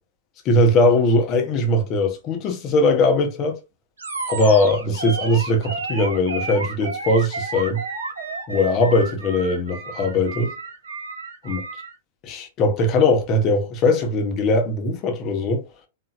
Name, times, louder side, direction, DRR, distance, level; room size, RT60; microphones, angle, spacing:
voice 1, 0.4-3.6 4.3-7.8 8.5-10.5 11.4-11.6 12.2-15.7, left 2 dB, 35° left, 1.5 m, -20 dB
Animal, 4.0-11.9, right 3 dB, 80° right, 1.4 m, -32 dB
4.3 x 3.7 x 2.6 m
figure-of-eight pair, 105°, 0 cm